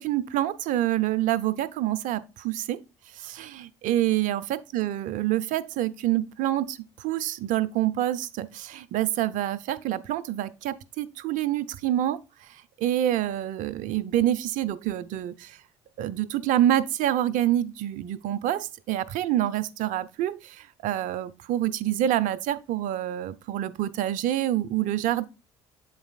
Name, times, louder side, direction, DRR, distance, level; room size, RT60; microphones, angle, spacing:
voice 1, 0.0-2.8 3.3-6.8 7.0-12.2 12.8-15.3 16.0-20.4 20.8-25.3, right 13 dB, 55° right, 0.6 m, -26 dB
7.9 x 4.0 x 4.0 m
figure-of-eight pair, 50°, 16 cm